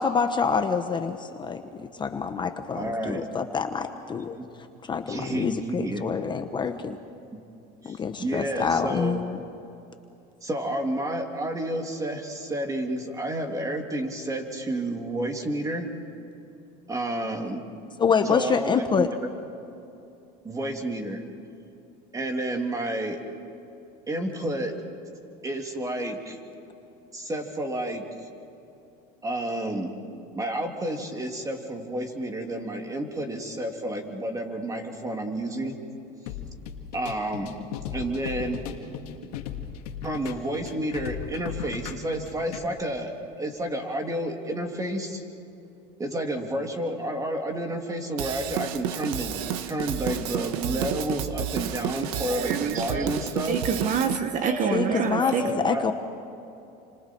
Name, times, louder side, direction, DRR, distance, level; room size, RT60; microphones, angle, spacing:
voice 1, 0.0-4.4 4.8-7.0 7.8-9.4 18.0-19.1 54.7-55.9, left 6 dB, 25° left, 1.1 m, -26 dB
voice 2, 2.7-3.2 4.4-4.5 5.1-6.0 7.3-7.4 7.8-9.2 10.4-15.9 16.9-17.6 18.3-19.2 20.4-21.2 22.1-23.2 24.1-24.7 25.4-26.4 27.1-28.0 29.2-29.9 30.3-35.7 36.9-37.6 37.9-38.6 40.0-45.2 46.0-49.4 49.7-53.6 55.2-55.8, right 1 dB, 15° right, 3.1 m, -30 dB
sound 1, 36.3-42.7, left 8 dB, 90° left, 2.1 m, -37 dB
Drum kit / Drum, 48.2-54.2, right 9 dB, 80° right, 1.4 m, -31 dB
voice 3, 52.3-53.1 53.5-55.4, right 6 dB, 40° right, 1.3 m, -27 dB
30.0 x 26.5 x 4.7 m
supercardioid pair, 125°, 19 cm